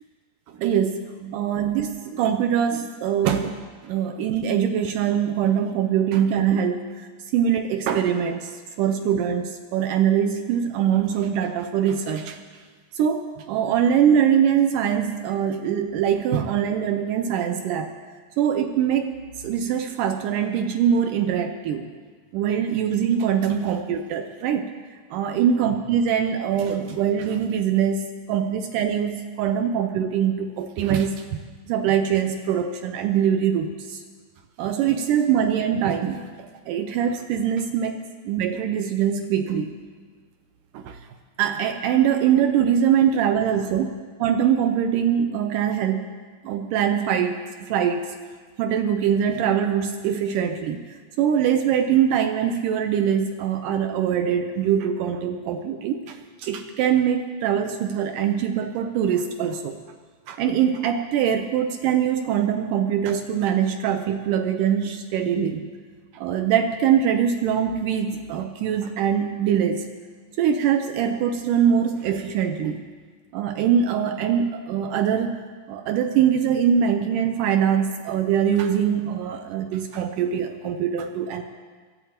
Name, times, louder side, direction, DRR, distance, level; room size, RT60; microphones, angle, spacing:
voice 1, 0.6-7.1 7.3-12.4 13.0-17.9 18.4-19.1 19.4-21.9 22.3-24.7 25.1-31.4 31.7-34.0 34.6-38.0 38.3-39.7 40.7-41.0 41.4-43.9 44.2-46.1 46.4-47.4 47.7-48.1 48.6-50.8 51.2-59.8 60.3-65.7 66.1-69.9 70.4-72.8 73.3-75.4 75.7-81.4, right 8 dB, 80° right, 6 dB, 2.0 m, -23 dB
23.0 x 8.2 x 4.4 m, 1.5 s
omnidirectional pair, 4.2 m